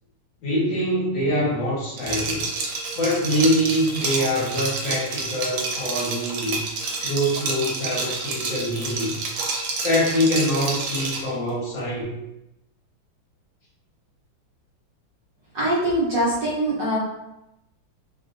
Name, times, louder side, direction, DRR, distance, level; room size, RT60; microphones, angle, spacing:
voice 1, 0.4-2.6 3.0-6.6 7.0-9.2 9.8-12.1, equal, 65° left, -6 dB, 1.6 m, -24 dB
Liquid, 2.0-11.3, right 3 dB, 85° right, 1.5 m, -29 dB
voice 2, 15.5-17.0, right 1 dB, 55° right, -9 dB, 1.2 m, -23 dB
3.6 x 2.4 x 2.5 m, 0.87 s
omnidirectional pair, 2.4 m